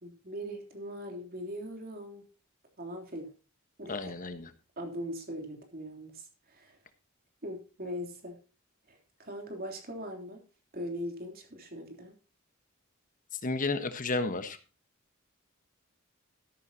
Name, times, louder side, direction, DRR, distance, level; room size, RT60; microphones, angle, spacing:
voice 1, 0.0-2.2 2.8-3.3 3.8-4.1 4.8-6.8 7.4-8.4 8.9-10.4 10.7-12.1, equal, 45° right, 3 dB, 3.3 m, -40 dB
voice 2, 3.9-4.5 13.4-14.6, left 3 dB, 40° left, 10 dB, 1.2 m, -32 dB
13.5 x 11.0 x 2.9 m, 0.34 s
head